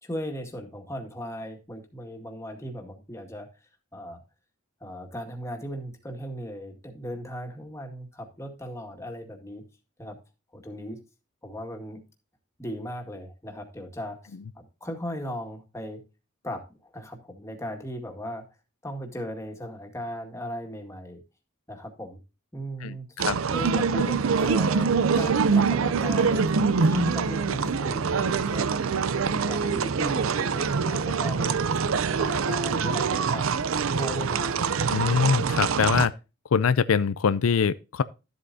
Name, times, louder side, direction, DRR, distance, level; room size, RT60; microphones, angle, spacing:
voice 1, 0.0-3.5 3.9-4.2 4.8-9.6 10.0-10.2 10.5-11.0 11.4-12.0 12.6-16.0 16.4-18.5 18.8-21.2 21.7-22.2 22.5-23.1 23.5-28.9 29.3-31.6 32.1-33.6 34.0-34.8, equal, 15° left, 2.0 m, -37 dB
voice 2, 22.8-23.4 34.9-36.1 36.5-38.0, left 6 dB, 90° left, 0.5 m, -23 dB
sound 1, 23.2-36.1, right 5 dB, 75° right, 0.6 m, -24 dB
12.5 x 8.0 x 2.7 m
head